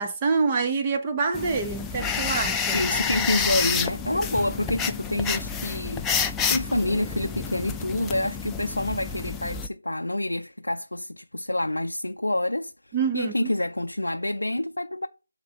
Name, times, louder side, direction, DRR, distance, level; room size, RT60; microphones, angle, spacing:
voice 1, 0.0-2.8 12.9-13.5, right 4 dB, 20° right, 0.8 m, -26 dB
sound 1, 1.3-9.7, left 6 dB, 5° left, 0.3 m, -29 dB
voice 2, 2.7-15.1, left 1 dB, 75° left, 0.5 m, -28 dB
7.8 x 3.7 x 5.3 m
figure-of-eight pair, 160°, 0 cm